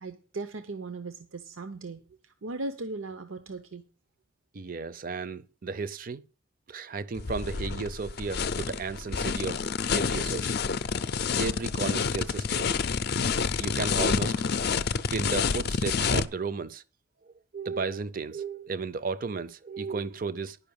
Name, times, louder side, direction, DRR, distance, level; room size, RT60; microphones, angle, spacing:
voice 1, 0.0-3.8, right 3 dB, 85° right, 0.8 m, -38 dB
voice 2, 4.5-6.2 6.7-9.6 9.9-10.5 11.4-12.8 13.6-14.4 15.1-16.8 17.5-20.6, right 4 dB, 45° right, 0.5 m, -34 dB
sound 1, 7.2-16.3, left 5 dB, 50° left, 0.5 m, -28 dB
11.0 x 5.5 x 7.0 m
head